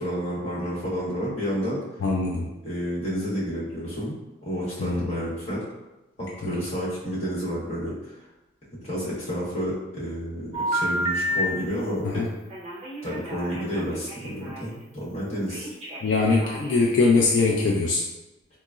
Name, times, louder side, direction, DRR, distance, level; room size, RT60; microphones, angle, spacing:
voice 1, 0.0-1.8 2.6-4.1 4.4-5.6 6.2-7.9 8.8-12.3 13.0-15.7, equal, 35° left, -8 dB, 1.1 m, -30 dB
voice 2, 2.0-2.5 4.8-5.3 6.4-6.6 12.0-12.3 16.0-18.0, left 3 dB, 65° left, -2 dB, 0.3 m, -22 dB
Telephone, 10.5-11.4 12.5-14.6 15.5-16.9, right 1 dB, 30° right, 0.5 m, -30 dB
3.7 x 2.0 x 2.3 m, 1.0 s
head